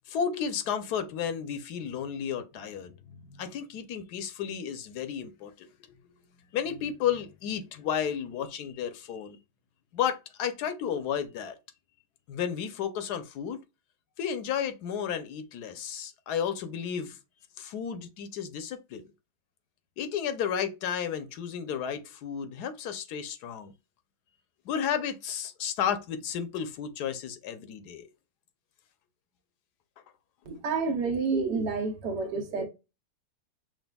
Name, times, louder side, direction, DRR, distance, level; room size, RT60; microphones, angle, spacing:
voice 1, 0.1-5.7 6.5-9.4 9.9-11.6 12.3-13.6 14.2-17.2 17.6-19.0 20.0-23.7 24.7-28.1, left 8 dB, 80° left, 1.2 m, -32 dB
voice 2, 30.5-32.7, right 4 dB, 90° right, 1.6 m, -29 dB
6.0 x 2.5 x 2.2 m
omnidirectional pair, 1.7 m